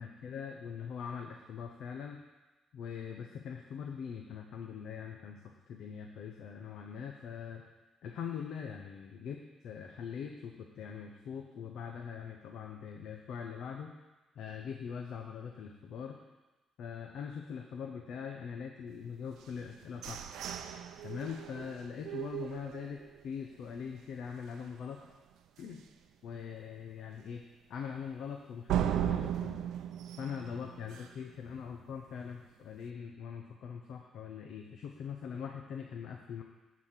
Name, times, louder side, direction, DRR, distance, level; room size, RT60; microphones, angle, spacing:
voice 1, 0.0-2.2 2.7-7.6 8.0-9.4 9.6-13.9 14.3-16.2 16.8-20.3 21.0-25.0 25.6-25.8 26.2-27.4 27.7-29.7 30.2-36.4, left 7 dB, 75° left, 2 dB, 0.8 m, -42 dB
sound 1, 19.4-23.3 23.7-23.8 24.2-24.6 25.0-25.1 25.6-25.7 28.7-31.4, right 10 dB, 85° right, 0.6 m, -36 dB
11.0 x 4.2 x 7.5 m, 1.1 s
cardioid pair, 90°, 0 cm